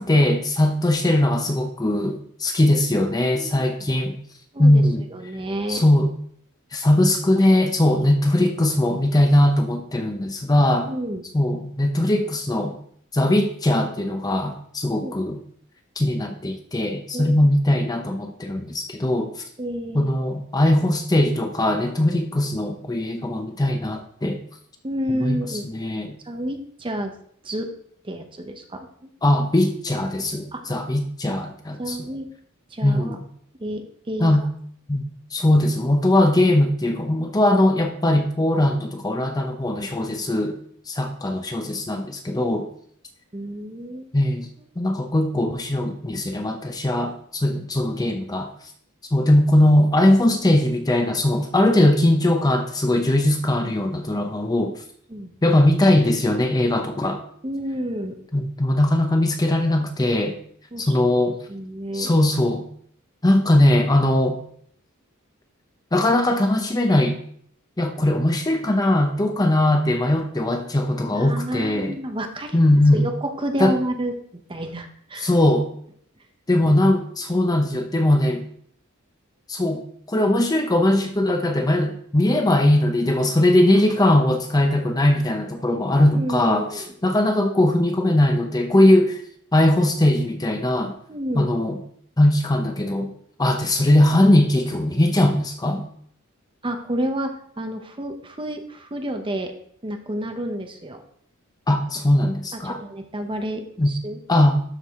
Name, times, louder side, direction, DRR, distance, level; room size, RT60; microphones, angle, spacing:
voice 1, 0.0-4.2 4.6-5.0 5.7-6.1 6.7-10.9 11.3-12.8 13.1-15.4 16.0-19.3 19.9-24.4 25.1-26.2 29.2-32.0 32.8-33.2 34.2-34.4 34.9-35.0 35.3-40.6 40.9-42.7 44.1-44.5 44.8-48.5 49.1-54.8 55.4-57.2 58.3-60.4 60.8-61.4 61.9-62.7 63.2-64.4 65.9-67.2 67.8-72.0 72.5-73.0 73.6-73.7 75.2-75.7 76.5-78.5 79.5-79.8 80.1-89.2 89.5-90.9 91.3-91.8 92.2-93.1 93.4-95.8 101.7-102.8 103.8-103.9 104.3-104.6, left 1 dB, 20° left, 5 dB, 0.7 m, -20 dB
voice 2, 3.4-3.9 4.5-4.8 5.1-5.8 7.4-7.5 10.8-11.2 15.0-15.1 17.1-17.5 19.6-20.1 24.8-25.7 26.2-27.1 27.4-27.7 28.0-29.1 30.5-30.6 31.8-32.3 32.7-33.2 33.6-34.3 43.3-44.1 55.1-55.3 57.4-58.2 60.7-60.9 61.5-62.1 71.1-72.6 72.9-75.3 86.1-86.9 91.1-91.5 96.6-97.3 97.6-99.5 99.8-101.0 102.6-104.2, right 1 dB, 25° right, 5 dB, 0.9 m, -30 dB
12.5 x 4.8 x 3.6 m, 0.63 s
head